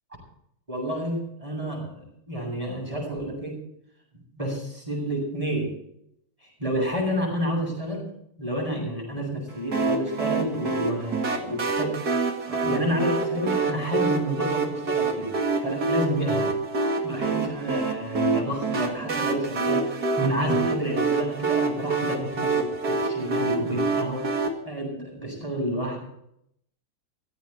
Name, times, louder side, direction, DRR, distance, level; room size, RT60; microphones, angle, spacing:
voice 1, 0.7-3.6 4.4-5.7 6.6-8.1 8.4-12.0 12.5-15.3 15.6-16.5 17.0-24.2 24.6-26.0, equal, 15° right, -1 dB, 8.0 m, -29 dB
sound 1, 9.7-24.5, right 3 dB, 45° right, 2.4 m, -26 dB
17.0 x 15.5 x 4.4 m, 0.74 s
omnidirectional pair, 2.4 m